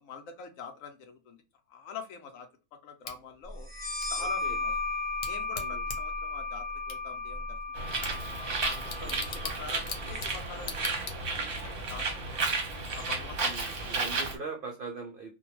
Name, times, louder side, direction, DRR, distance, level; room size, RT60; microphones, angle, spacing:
voice 1, 0.0-1.4 1.7-2.5 2.8-3.7 4.1-4.8 5.2-7.6 7.9-8.1 8.6-12.5 12.9-13.9, left 6 dB, 70° left, 6 dB, 0.9 m, -45 dB
Bicycle / Tick, 3.0-11.6, left 5 dB, 90° left, 1.2 m, -44 dB
sound 1, 3.7-11.0, left 3 dB, 5° right, 0.9 m, -36 dB
voice 2, 4.2-4.6 5.5-5.8 13.4-15.3, right 4 dB, 75° right, 2 dB, 0.5 m, -41 dB
Bird, 7.7-14.3, right 3 dB, 50° right, 0.8 m, -33 dB
2.5 x 2.2 x 2.9 m, 0.32 s
omnidirectional pair, 1.6 m